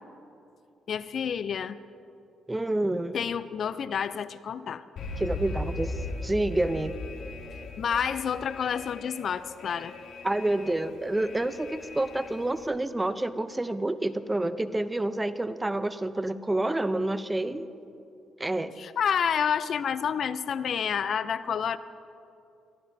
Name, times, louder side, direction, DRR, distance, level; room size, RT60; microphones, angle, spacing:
voice 1, 0.9-1.8 3.1-4.8 7.8-9.9 18.8-21.8, left 7 dB, 60° left, 15 dB, 0.4 m, -29 dB
voice 2, 2.5-3.2 5.2-6.9 10.2-17.7 18.4-18.8, right 1 dB, 15° right, 12 dB, 0.6 m, -28 dB
Alarm, 5.0-12.7, left 2 dB, 75° left, 2.5 m, -38 dB
24.0 x 14.0 x 2.7 m, 2.7 s
cardioid pair, 90°, 0 cm